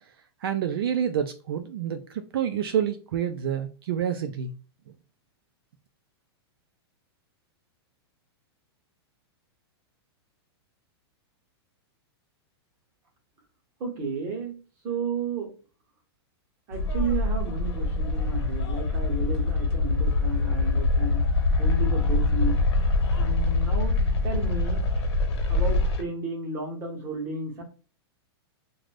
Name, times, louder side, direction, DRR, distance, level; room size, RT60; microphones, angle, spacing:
voice 1, 0.4-4.5, right 9 dB, 60° right, 0.4 m, -28 dB
voice 2, 13.8-14.6 14.8-15.5 16.7-21.3 21.6-22.6 23.2-24.0 24.2-24.8 25.5-27.6, right 3 dB, 20° right, 0.8 m, -32 dB
sound 1, 16.7-26.0, left 2 dB, 90° left, 0.9 m, -24 dB
2.5 x 2.2 x 3.3 m
supercardioid pair, 175°, 14 cm